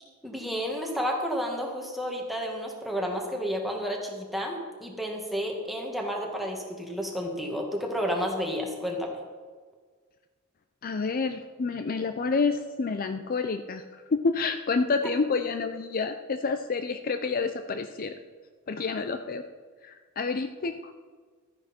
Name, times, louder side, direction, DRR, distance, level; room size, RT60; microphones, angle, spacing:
voice 1, 0.2-9.2, equal, ahead, 0 dB, 1.7 m, -31 dB
voice 2, 10.8-13.8 14.1-18.2 18.7-19.4 19.8-20.9, left 4 dB, 40° left, 8 dB, 0.5 m, -28 dB
13.0 x 9.7 x 4.3 m, 1.6 s
head